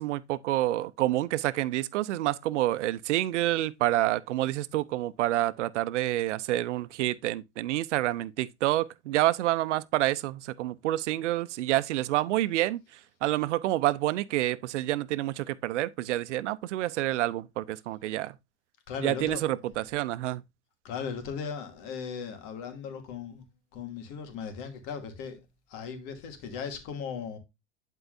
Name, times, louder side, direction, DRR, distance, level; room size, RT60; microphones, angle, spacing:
voice 1, 0.0-12.8 13.2-18.4 19.0-20.4, right 15 dB, 85° right, 0.7 m, -28 dB
voice 2, 18.9-19.4 20.8-23.4 23.7-25.4 25.7-27.4, left 6 dB, 65° left, 2.5 m, -37 dB
11.0 x 4.6 x 2.6 m
hypercardioid pair, 90°, 35 cm